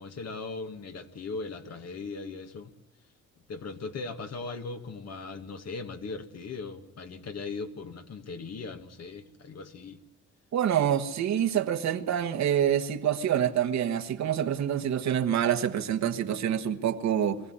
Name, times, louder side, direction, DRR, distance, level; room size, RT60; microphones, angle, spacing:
voice 1, 0.0-2.7 3.5-10.0, left 4 dB, 60° left, 2.2 m, -38 dB
voice 2, 10.5-17.4, right 9 dB, 65° right, 1.5 m, -26 dB
23.0 x 15.5 x 9.8 m
cardioid pair, 90°, 30 cm